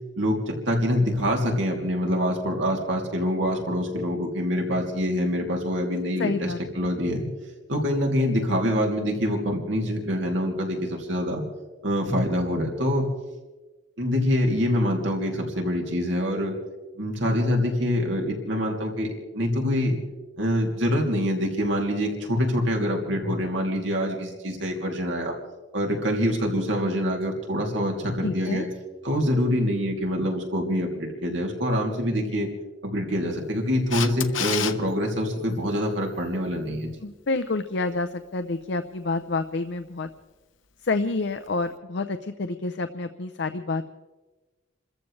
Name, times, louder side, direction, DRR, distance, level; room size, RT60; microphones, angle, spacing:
voice 1, 0.2-7.3 7.7-11.4 11.8-13.1 14.0-16.5 17.0-19.1 19.3-20.0 20.4-25.3 25.7-28.7 29.0-32.5 32.8-36.9, equal, 70° right, 0 dB, 2.9 m, -25 dB
voice 2, 6.2-6.9 28.2-28.6 37.0-40.1 40.8-43.9, left 3 dB, 65° left, 9 dB, 0.6 m, -28 dB
Camera, 33.9-34.7 41.5-41.6, left 9 dB, 85° left, 1.0 m, -27 dB
29.5 x 14.5 x 3.3 m, 1.2 s
head